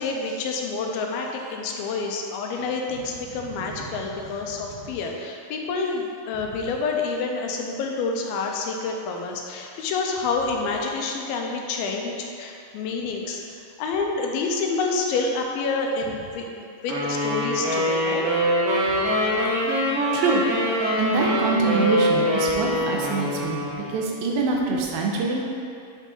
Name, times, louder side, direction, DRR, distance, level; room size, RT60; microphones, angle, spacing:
voice 1, 0.0-13.4 13.8-18.3 18.9-19.4, left 4 dB, 90° left, 1 dB, 2.5 m, -28 dB
voice 2, 3.4-3.9 18.9-19.0 20.1-25.4, right 3 dB, 85° right, -1 dB, 2.5 m, -25 dB
sound 1, 16.9-24.1, equal, 60° right, 1.6 m, -24 dB
8.2 x 4.0 x 3.7 m, 2.4 s
omnidirectional pair, 4.2 m